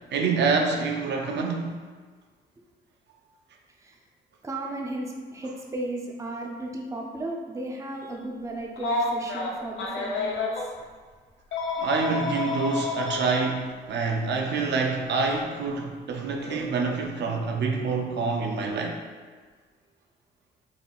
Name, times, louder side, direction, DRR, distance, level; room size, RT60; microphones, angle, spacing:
voice 1, 0.1-1.8 11.8-19.0, right 4 dB, 60° right, 2 dB, 0.5 m, -27 dB
voice 2, 4.4-10.7, right 1 dB, 15° right, 0 dB, 0.5 m, -35 dB
Telephone, 8.8-10.6 11.5-13.4 14.8-14.9 16.4-16.6, left 3 dB, 70° left, 0.7 m, -29 dB
3.8 x 3.6 x 2.4 m, 1.5 s
cardioid pair, 90°, 20 cm